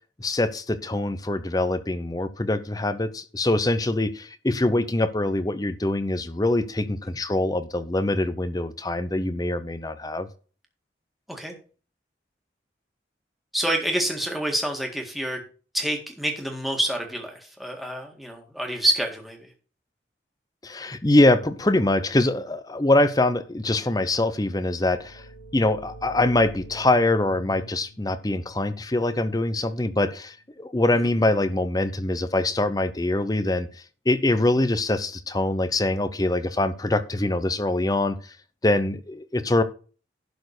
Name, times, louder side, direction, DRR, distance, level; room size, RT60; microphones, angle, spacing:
voice 1, 0.2-10.3 20.6-25.2 25.5-33.7 34.1-38.2 38.6-39.6, left 2 dB, 20° left, 0.7 m, -23 dB
voice 2, 13.5-15.4 15.7-19.5 30.9-31.1, right 1 dB, ahead, 1.9 m, -27 dB
sound 1, 24.7-30.3, equal, 90° left, 4.4 m, -45 dB
11.5 x 4.3 x 6.6 m
head